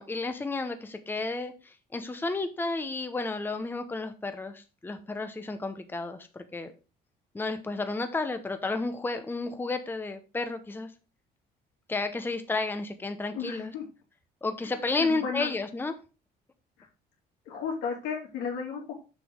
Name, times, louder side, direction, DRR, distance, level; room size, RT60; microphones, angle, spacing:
voice 1, 0.0-6.7 7.3-10.9 11.9-13.7 14.4-15.9, left 3 dB, 10° left, 8 dB, 0.8 m, -32 dB
voice 2, 13.3-13.9 14.6-14.7 15.0-15.6 17.5-18.9, left 6 dB, 90° left, 0 dB, 2.7 m, -34 dB
7.1 x 5.9 x 3.6 m, 0.32 s
cardioid pair, 110°, 17 cm